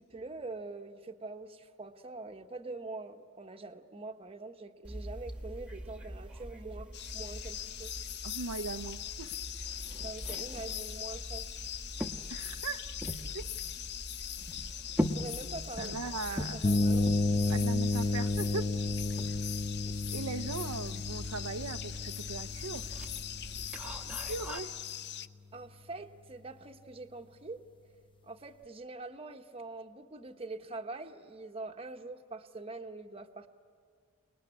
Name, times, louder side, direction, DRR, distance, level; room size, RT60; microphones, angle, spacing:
voice 1, 0.0-7.9 10.0-11.5 15.1-16.0 16.3-17.6 19.9-20.0 25.5-27.6 28.2-33.5, right 3 dB, 25° right, 5 dB, 1.1 m, -44 dB
sound 1, 4.8-24.6, equal, 5° right, 1.2 m, -42 dB
sound 2, 6.9-25.3, left 11 dB, 50° left, 0.6 m, -41 dB
voice 2, 8.2-9.4 12.3-12.9 13.3-13.4 15.8-16.7 17.5-18.7 20.1-22.9 23.8-24.7, right 4 dB, 80° right, 8 dB, 0.7 m, -39 dB
sound 3, 16.6-24.4, left 2 dB, 25° left, 0.8 m, -32 dB
29.0 x 20.0 x 9.8 m, 2.1 s
head